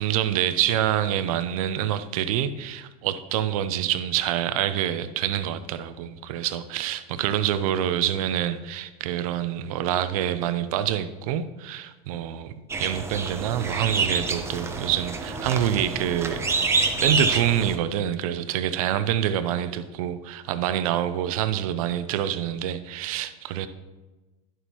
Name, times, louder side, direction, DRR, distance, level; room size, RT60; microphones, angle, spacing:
voice 1, 0.0-12.5 12.8-23.7, right 11 dB, 70° right, 12 dB, 0.6 m, -26 dB
sound 1, 12.7-17.7, right 4 dB, 15° right, 0.8 m, -27 dB
11.0 x 6.9 x 3.0 m, 1.2 s
hypercardioid pair, 110°, 19 cm